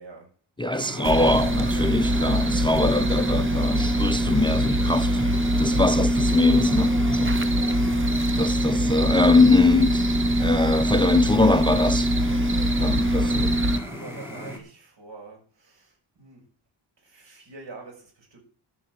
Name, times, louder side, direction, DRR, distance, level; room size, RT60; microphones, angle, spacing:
voice 1, 0.0-1.9 7.6-8.6 12.9-16.4 17.0-18.4, right 3 dB, 65° right, 7.3 m, -46 dB
voice 2, 0.6-5.3 5.6-7.4 8.3-10.0 10.4-12.1 12.8-13.5, left 3 dB, 10° left, 0.5 m, -22 dB
sound 1, 0.7-14.6, left 1 dB, 5° right, 4.2 m, -37 dB
sound 2, 1.0-13.8, right 1 dB, 25° right, 1.1 m, -23 dB
12.0 x 7.9 x 7.8 m
wide cardioid pair, 130°, 46 cm